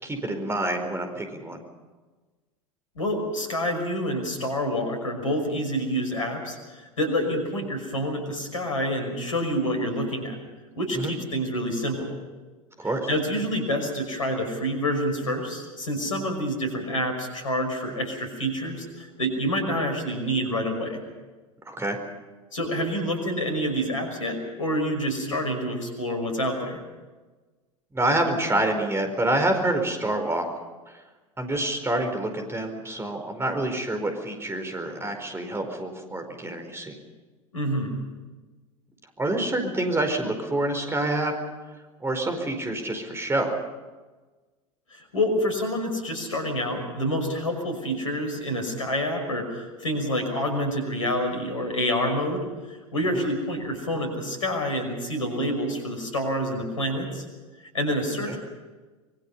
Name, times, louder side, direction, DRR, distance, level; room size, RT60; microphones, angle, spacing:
voice 1, 0.0-1.6 10.9-11.1 12.8-13.1 21.6-22.0 27.9-30.5 31.4-36.9 39.2-41.3 42.0-43.5 53.1-53.2 58.3-58.4, right 1 dB, 15° right, 5 dB, 4.7 m, -27 dB
voice 2, 3.0-10.4 10.8-12.2 13.1-21.0 22.5-26.8 37.5-38.0 44.9-57.2 57.7-58.4, equal, 75° left, 5 dB, 5.8 m, -27 dB
25.5 x 22.5 x 5.6 m, 1.3 s
figure-of-eight pair, 75°, 17 cm